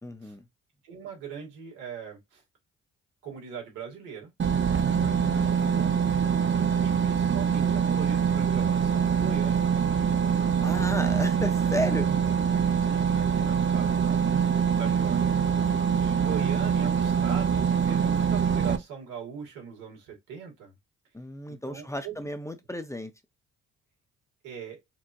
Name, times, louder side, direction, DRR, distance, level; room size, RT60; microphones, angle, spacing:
voice 1, 0.0-0.4 4.8-6.0 10.6-12.1 21.1-23.1, left 1 dB, 10° left, 0.8 m, -34 dB
voice 2, 0.8-2.4 3.2-4.3 4.9-5.2 6.8-9.7 12.8-15.4 16.0-20.7 21.5-22.2 24.4-24.8, right 7 dB, 85° right, 2.2 m, -40 dB
sound 1, 4.4-18.8, right 7 dB, 40° right, 0.9 m, -24 dB
4.7 x 2.7 x 2.5 m
supercardioid pair, 55°, 31 cm